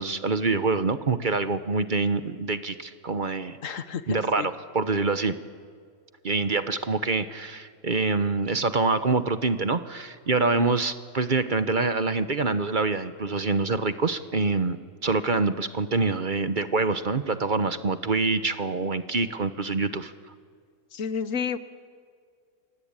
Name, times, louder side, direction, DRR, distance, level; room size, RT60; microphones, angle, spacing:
voice 1, 0.0-5.3 6.2-14.8 15.0-20.1, right 3 dB, 40° right, 11 dB, 1.0 m, -26 dB
voice 2, 3.6-4.5 20.9-21.6, left 6 dB, 65° left, 12 dB, 1.5 m, -31 dB
28.0 x 23.0 x 8.9 m, 2.1 s
omnidirectional pair, 1.5 m